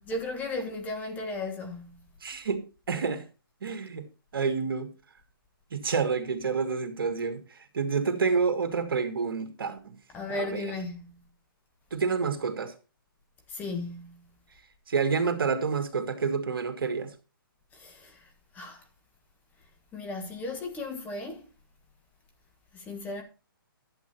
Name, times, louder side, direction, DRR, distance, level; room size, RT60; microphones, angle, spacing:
voice 1, 0.0-2.1 10.1-11.3 13.5-14.3 17.7-18.8 19.9-21.4 22.7-23.2, left 2 dB, 15° left, 1.6 m, -36 dB
voice 2, 2.2-3.2 3.6-4.1 4.3-4.9 5.7-9.9 10.3-10.7 11.9-12.7 14.9-17.1, right 5 dB, 70° right, 2.3 m, -28 dB
11.5 x 8.1 x 4.4 m
hypercardioid pair, 155°, 12 cm